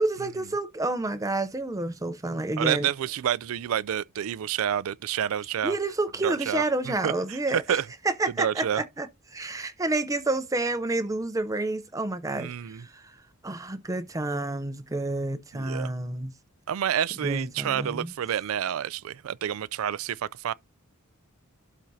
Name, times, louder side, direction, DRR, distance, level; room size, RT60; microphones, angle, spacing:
voice 1, 0.0-2.9 5.6-13.2 13.4-16.3 17.2-18.1, right 2 dB, 15° right, 0.5 m, -29 dB
voice 2, 2.6-5.8 6.2-7.8 8.4-8.8 12.3-12.8 15.5-15.9 16.7-20.5, right 9 dB, 75° right, 0.4 m, -29 dB
12.0 x 4.3 x 2.7 m
head